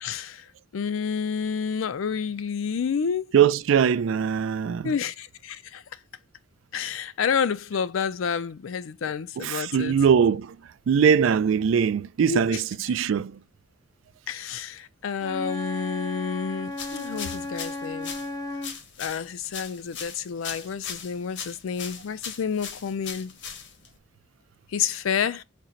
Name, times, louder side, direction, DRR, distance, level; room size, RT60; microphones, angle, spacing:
voice 1, 0.0-0.5 0.7-3.3 4.8-5.8 6.7-9.9 12.3-12.6 14.3-18.1 19.0-23.4 24.7-25.4, left 6 dB, 85° left, 0.4 m, -29 dB
voice 2, 3.3-4.9 9.4-10.6 10.9-12.6 12.9-13.4, right 7 dB, 75° right, 0.3 m, -21 dB
Wind instrument woodwind instrument, 15.2-18.8, left 2 dB, 20° left, 0.4 m, -34 dB
sound 1, 16.7-24.0, left 6 dB, 60° left, 0.8 m, -39 dB
4.2 x 2.1 x 3.7 m
head